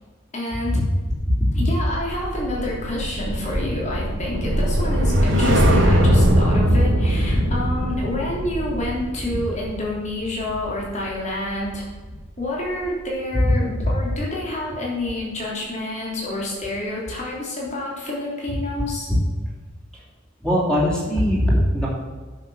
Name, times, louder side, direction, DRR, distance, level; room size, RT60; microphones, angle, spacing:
voice 1, 0.3-0.8 1.5-11.8 12.4-19.1, left 1 dB, 35° left, -3 dB, 3.1 m, -28 dB
voice 2, 1.3-1.6 5.6-5.7 13.3-13.5 13.8-13.9 19.1-19.2 20.4-21.9, equal, 5° left, -6 dB, 3.0 m, -20 dB
sound 1, 1.9-12.2 12.6-12.9, equal, 75° right, 2.1 m, -22 dB
10.0 x 6.5 x 6.1 m, 1.4 s
head